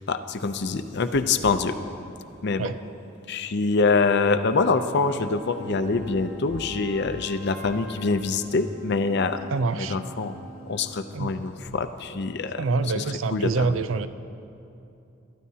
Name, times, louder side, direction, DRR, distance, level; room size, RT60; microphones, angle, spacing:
voice 1, 0.1-1.8 2.4-2.7 3.3-9.4 9.8-10.4 10.7-12.6 12.9-13.0 13.3-13.8, left 4 dB, 55° left, 9 dB, 0.6 m, -25 dB
sound 1, 4.7-10.9, right 2 dB, 50° right, 3.2 m, -45 dB
voice 2, 9.5-10.0 11.1-11.3 12.6-14.1, right 4 dB, 75° right, 12 dB, 0.5 m, -26 dB
22.0 x 13.0 x 2.8 m, 2.7 s
head